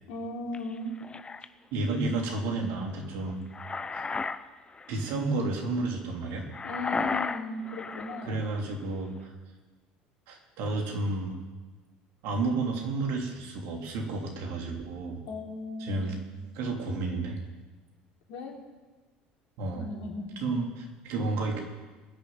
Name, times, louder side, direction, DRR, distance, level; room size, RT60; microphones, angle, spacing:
voice 1, 0.1-1.0 6.6-8.4 15.3-16.2 18.3-18.6 19.7-20.3, left 2 dB, 70° left, -1 dB, 3.7 m, -37 dB
sound 1, 0.5-1.5 3.2-4.4 4.7-5.0 6.5-8.3, left 4 dB, 25° left, 0.8 m, -33 dB
voice 2, 1.7-3.4 3.9-4.0 4.9-6.5 8.2-9.3 10.3-11.4 12.2-15.2 15.8-16.2 16.5-17.4 19.6-19.9 20.4-21.6, right 3 dB, 70° right, 1 dB, 3.3 m, -31 dB
20.5 x 7.0 x 9.3 m, 1.3 s
hypercardioid pair, 75°, 4 cm